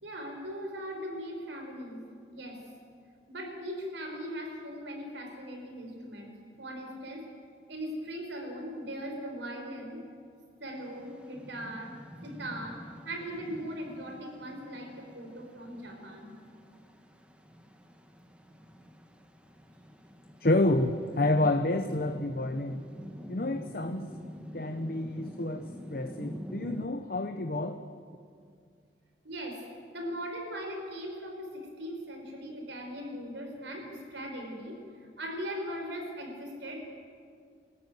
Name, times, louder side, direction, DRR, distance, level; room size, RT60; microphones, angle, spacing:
voice 1, 0.0-2.0 2.3-2.6 3.3-7.2 7.7-10.0 10.6-12.0 12.2-16.3 29.2-29.6 29.9-36.9, equal, 85° right, 2 dB, 5.0 m, -39 dB
sound 1, 10.8-26.9, equal, 5° right, 1.3 m, -46 dB
voice 2, 20.4-22.8 23.3-24.1 24.5-27.8, left 2 dB, 50° left, 7 dB, 0.9 m, -29 dB
25.5 x 14.0 x 9.4 m, 2.2 s
head